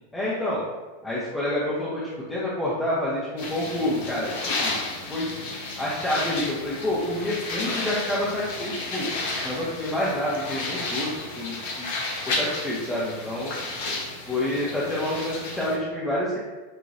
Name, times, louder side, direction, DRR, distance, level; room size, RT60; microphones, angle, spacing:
voice 1, 0.1-0.6 1.0-4.8 5.1-5.3 5.8-9.1 9.4-11.9 12.3-13.5 14.3-16.4, left 1 dB, 10° left, -10 dB, 1.0 m, -28 dB
sound 1, 3.4-15.8, left 2 dB, 50° left, 0.8 m, -32 dB
5.7 x 2.9 x 2.7 m, 1.3 s
figure-of-eight pair, 90°, 0 cm